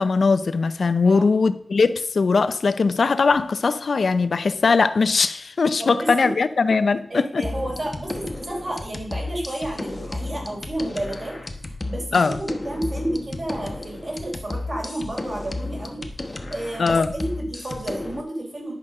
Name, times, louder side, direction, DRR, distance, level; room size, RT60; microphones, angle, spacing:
voice 1, 0.0-7.4 12.1-12.4 16.8-17.1, left 4 dB, 65° left, 0.6 m, -20 dB
voice 2, 1.0-1.4 5.8-6.3 7.1-18.7, right 1 dB, 45° right, 4.0 m, -31 dB
sound 1, 7.4-18.2, left 2 dB, 25° left, 1.1 m, -33 dB
11.0 x 5.2 x 6.6 m
wide cardioid pair, 120°, 0 cm